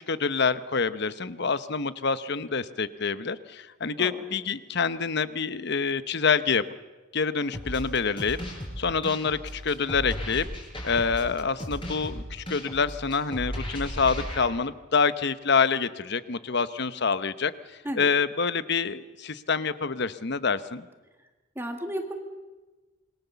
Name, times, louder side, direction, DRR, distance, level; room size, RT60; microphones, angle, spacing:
voice 1, 0.1-6.6 7.1-8.4 8.8-10.5 10.8-17.5 18.0-20.8, left 5 dB, 55° left, 14 dB, 0.9 m, -26 dB
sound 1, 7.5-14.4, equal, 25° left, 5.9 m, -35 dB
voice 2, 21.5-22.2, right 1 dB, 10° right, 4 dB, 1.8 m, -33 dB
27.0 x 21.5 x 7.0 m, 1.2 s
head